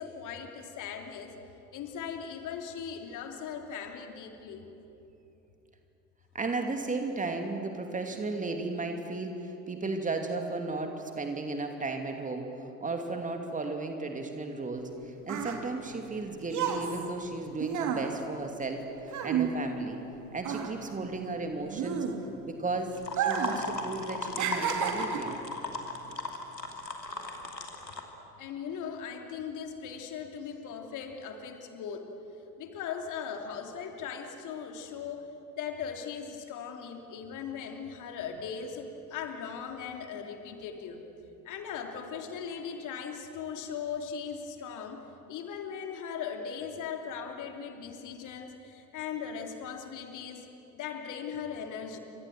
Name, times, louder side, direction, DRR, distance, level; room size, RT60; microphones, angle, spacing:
voice 1, 0.0-1.3 1.7-4.6 28.4-32.1 32.6-35.3 35.5-41.0 41.4-45.0 45.3-50.4 50.7-52.0, left 7 dB, 40° left, 4 dB, 3.2 m, -39 dB
voice 2, 6.3-12.5 12.8-18.8 19.2-20.0 20.3-22.0 22.4-25.4, right 3 dB, 15° right, 4 dB, 2.7 m, -34 dB
sound 1, 14.8-20.1 20.4-22.5 23.1-23.7 23.9-25.4 26.1-26.3, right 7 dB, 35° right, 3.2 m, -32 dB
sound 2, 22.9-28.0, left 3 dB, 85° left, 2.9 m, -37 dB
30.0 x 25.5 x 7.8 m, 3.0 s
figure-of-eight pair, 80°, 48 cm